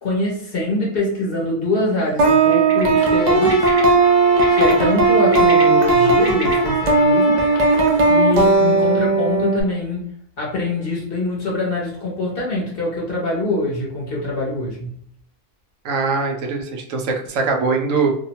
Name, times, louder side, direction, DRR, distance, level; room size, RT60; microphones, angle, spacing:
voice 1, 0.0-3.7 4.5-7.4 8.1-10.1 10.4-15.0, left 2 dB, 50° left, -4 dB, 0.8 m, -24 dB
sound 1, 2.2-9.6, right 3 dB, 90° right, 0.3 m, -16 dB
Bird, 2.5-2.8 3.5-3.8 4.4-4.7 5.2-6.5, equal, 20° right, 0.7 m, -30 dB
Trumpet, 2.9-8.2, left 4 dB, 90° left, 1.0 m, -31 dB
voice 2, 15.8-18.1, right 4 dB, 70° right, 2 dB, 1.0 m, -21 dB
2.8 x 2.1 x 2.7 m, 0.68 s
omnidirectional pair, 1.5 m